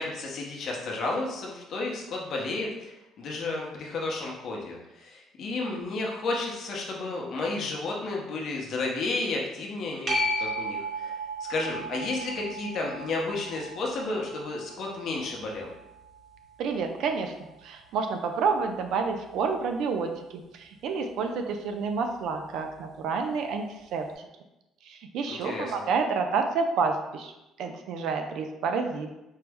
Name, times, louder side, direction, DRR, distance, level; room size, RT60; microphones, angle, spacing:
voice 1, 0.0-11.1 11.5-15.7 25.3-25.9, left 3 dB, 50° left, -1 dB, 0.7 m, -32 dB
sound 1, 10.1-17.2 22.8-22.9, right 1 dB, 35° right, 0.8 m, -35 dB
voice 2, 16.6-17.3 17.6-24.1 24.8-27.3 27.6-29.1, right 5 dB, 65° right, 5 dB, 0.4 m, -29 dB
4.5 x 2.0 x 3.4 m, 0.94 s
cardioid pair, 160°, 0 cm